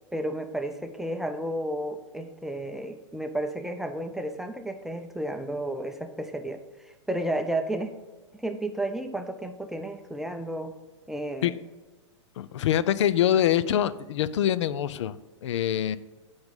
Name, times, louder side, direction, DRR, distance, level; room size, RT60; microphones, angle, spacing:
voice 1, 0.1-7.9 8.3-10.8 11.1-11.5, right 1 dB, 5° right, 6 dB, 0.6 m, -32 dB
voice 2, 12.4-15.2 15.4-16.0, left 11 dB, 70° left, 16 dB, 0.5 m, -24 dB
8.0 x 5.2 x 5.3 m, 1.3 s
hypercardioid pair, 115°, 16 cm